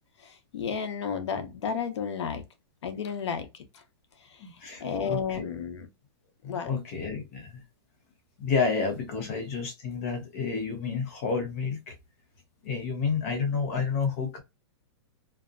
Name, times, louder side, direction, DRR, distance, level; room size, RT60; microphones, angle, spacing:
voice 1, 0.2-2.4 2.8-3.8 4.3-4.4 4.8-5.9 6.5-6.7 9.2-9.3, left 6 dB, 90° left, 0.7 m, -32 dB
voice 2, 4.4-5.5 6.4-7.6 8.4-11.9 12.6-14.4, left 5 dB, 30° left, 0.6 m, -30 dB
2.6 x 2.0 x 2.4 m
supercardioid pair, 175°, 14 cm